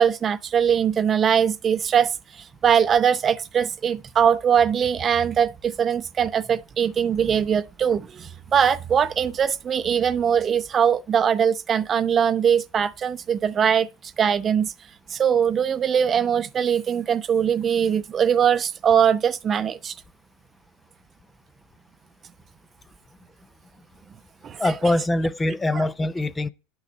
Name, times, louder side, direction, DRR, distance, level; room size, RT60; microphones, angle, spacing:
voice 1, 0.0-2.1 2.6-13.9 14.2-14.7 15.1-19.9 24.4-24.7 25.7-25.9, right 8 dB, 35° right, 0.6 m, -21 dB
voice 2, 24.6-26.5, left 2 dB, 15° left, 0.5 m, -23 dB
9.2 x 4.0 x 7.2 m
hypercardioid pair, 95°, 0 cm